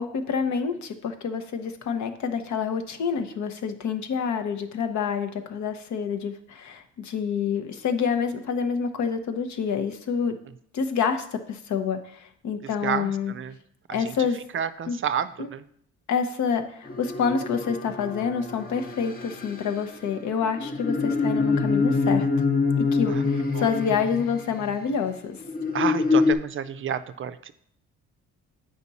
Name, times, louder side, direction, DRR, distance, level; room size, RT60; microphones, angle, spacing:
voice 1, 0.0-10.4 10.7-13.3 13.9-14.4 14.9-15.0 15.4-15.5 16.1-22.3 22.8-25.4, left 6 dB, 70° left, 7 dB, 0.9 m, -27 dB
voice 2, 12.8-13.5 14.5-15.6 23.5-23.6 25.7-27.5, right 8 dB, 45° right, 12 dB, 0.4 m, -29 dB
sound 1, 16.9-24.7 25.4-26.3, left 4 dB, 30° left, 0.8 m, -26 dB
8.2 x 5.1 x 4.1 m, 0.68 s
cardioid pair, 90°, 30 cm